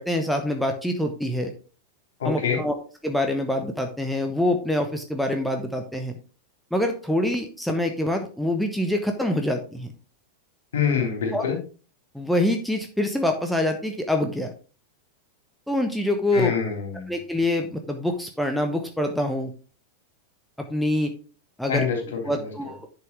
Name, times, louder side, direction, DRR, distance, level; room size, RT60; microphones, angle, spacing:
voice 1, 0.0-1.5 2.2-2.7 3.0-6.1 6.7-9.9 11.3-11.4 12.1-14.5 15.7-16.6 17.1-19.5 20.6-21.1 21.6-21.9 22.2-22.9, left 1 dB, ahead, 4 dB, 1.0 m, -25 dB
voice 2, 2.2-2.6 10.7-11.6 16.3-17.1 21.7-22.5, left 6 dB, 60° left, 2 dB, 3.4 m, -25 dB
11.0 x 5.8 x 3.5 m, 0.37 s
figure-of-eight pair, 90°, 0 cm